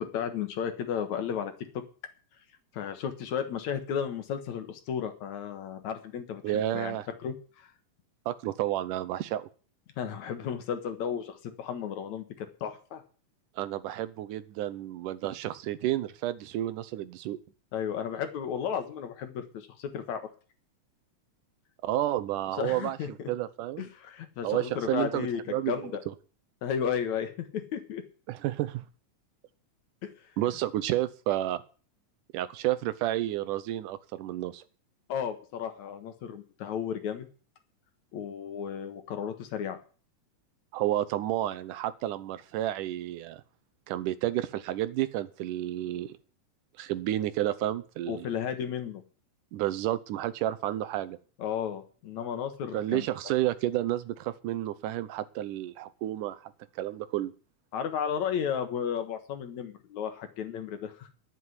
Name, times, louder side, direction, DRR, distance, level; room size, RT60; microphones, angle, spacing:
voice 1, 0.0-1.8 2.7-7.0 7.2-7.7 10.0-13.0 17.7-20.3 22.6-23.3 23.8-26.0 26.6-28.0 30.0-30.1 35.1-37.3 38.1-39.8 48.1-49.0 51.4-53.1 57.7-61.1, left 8 dB, 65° left, 7 dB, 2.8 m, -34 dB
voice 2, 6.4-7.1 8.3-9.5 13.6-17.4 21.8-23.9 24.4-25.7 28.3-28.8 30.4-31.6 32.3-34.6 40.7-43.4 43.9-46.1 46.8-48.3 49.5-51.2 52.7-57.3, right 14 dB, 90° right, 14 dB, 2.4 m, -31 dB
11.0 x 7.8 x 9.7 m, 0.38 s
omnidirectional pair, 3.6 m